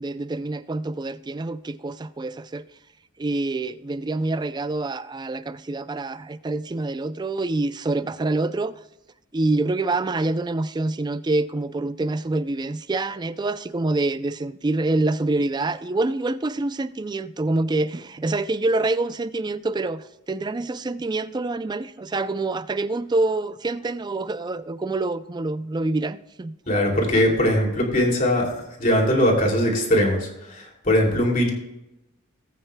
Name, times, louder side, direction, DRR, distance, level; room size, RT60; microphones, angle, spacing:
voice 1, 0.0-2.7 3.2-8.8 9.3-26.5, right 2 dB, 20° right, 0.3 m, -26 dB
voice 2, 26.7-31.5, left 1 dB, 40° left, 2.7 m, -21 dB
19.0 x 8.8 x 2.2 m
head